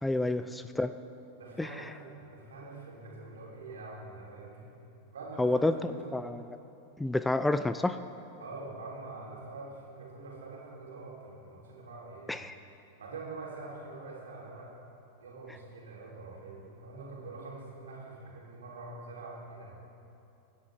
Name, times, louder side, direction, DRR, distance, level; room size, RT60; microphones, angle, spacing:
voice 1, 0.0-0.9 1.6-1.9 5.4-5.7 6.1-6.4 7.0-8.0 12.3-12.6, left 2 dB, 5° left, 11 dB, 0.4 m, -29 dB
voice 2, 1.4-4.7 5.1-6.2 8.4-12.4 13.0-14.7 15.2-19.7, right 3 dB, 65° right, -4 dB, 3.5 m, -45 dB
25.0 x 10.5 x 3.5 m, 2.8 s
figure-of-eight pair, 90°, 0 cm